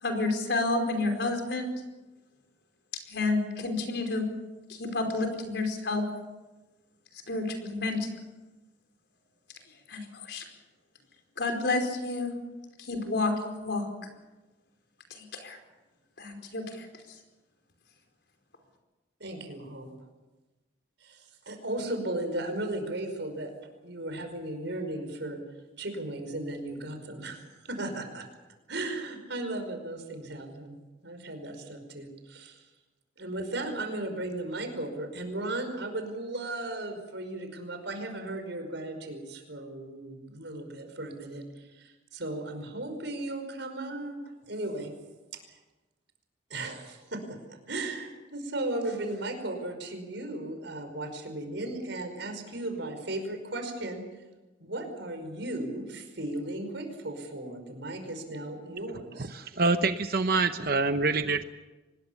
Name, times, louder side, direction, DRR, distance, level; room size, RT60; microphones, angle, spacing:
voice 1, 0.0-1.7 3.1-4.2 4.7-6.0 7.3-8.1 9.9-10.4 11.4-12.3 12.8-13.8 15.1-15.6 16.2-16.9, left 2 dB, 65° left, 4 dB, 4.8 m, -30 dB
voice 2, 19.2-19.9 21.0-23.5 23.8-25.4 25.8-28.2 28.7-32.6 33.2-44.2 44.5-44.9 46.5-47.2 47.5-54.0 54.6-59.3, right 2 dB, 70° right, 6 dB, 5.2 m, -36 dB
voice 3, 59.2-61.4, right 3 dB, 50° right, 9 dB, 0.9 m, -26 dB
25.0 x 20.5 x 7.2 m, 1.1 s
head